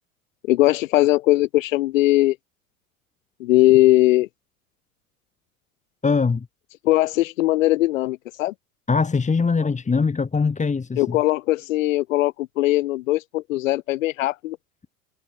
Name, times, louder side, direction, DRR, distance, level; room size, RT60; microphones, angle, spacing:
voice 1, 0.5-2.4 3.4-4.3 6.8-8.5 11.0-14.6, left 17 dB, 65° left, 2.6 m, -20 dB
voice 2, 6.0-6.5 8.9-11.2, left 4 dB, 15° left, 3.0 m, -22 dB
figure-of-eight pair, 75°, 42 cm